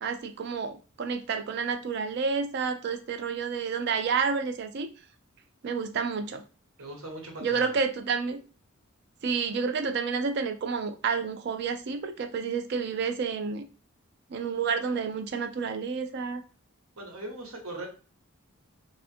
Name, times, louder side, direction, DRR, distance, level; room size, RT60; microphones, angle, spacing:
voice 1, 0.0-4.9 5.6-6.4 7.4-8.4 9.2-13.7 14.3-16.4, right 5 dB, 50° right, 8 dB, 0.3 m, -30 dB
voice 2, 6.8-7.8 17.0-17.9, right 1 dB, 75° right, 0 dB, 0.9 m, -40 dB
2.6 x 2.4 x 2.4 m, 0.35 s
head